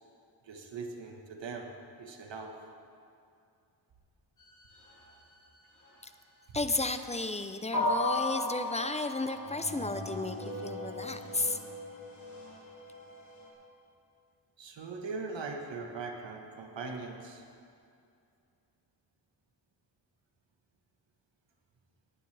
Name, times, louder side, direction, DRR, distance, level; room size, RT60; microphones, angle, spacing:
voice 1, 0.4-2.6 14.6-17.4, right 4 dB, 80° right, 2 dB, 1.5 m, -40 dB
sound 1, 4.4-5.4 5.8-6.0 6.8-6.9 7.7-13.5, left 1 dB, 40° left, 3.3 m, -36 dB
voice 2, 6.5-11.6, left 2 dB, 15° left, 9 dB, 0.6 m, -33 dB
18.5 x 10.5 x 3.4 m, 2.5 s
wide cardioid pair, 90°, 43 cm